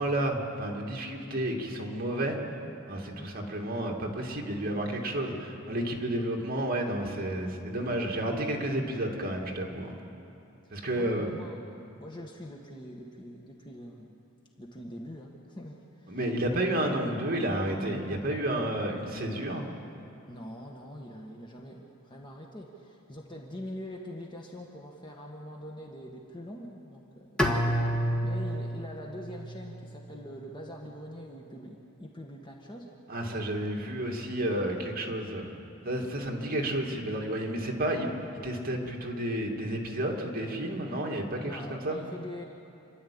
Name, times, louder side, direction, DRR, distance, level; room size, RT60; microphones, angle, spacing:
voice 1, 0.0-2.4 2.9-9.9 10.7-11.3 16.1-19.7 33.1-35.5 35.8-38.1 38.4-42.0, right 1 dB, 50° right, 1 dB, 2.5 m, -31 dB
voice 2, 10.6-11.7 12.0-14.2 14.6-16.2 20.3-32.9 41.4-42.4, equal, 25° left, 0 dB, 1.5 m, -44 dB
Bowed string instrument, 27.4-30.4, equal, 5° left, 1.7 m, -30 dB
28.0 x 11.5 x 8.7 m, 2.7 s
head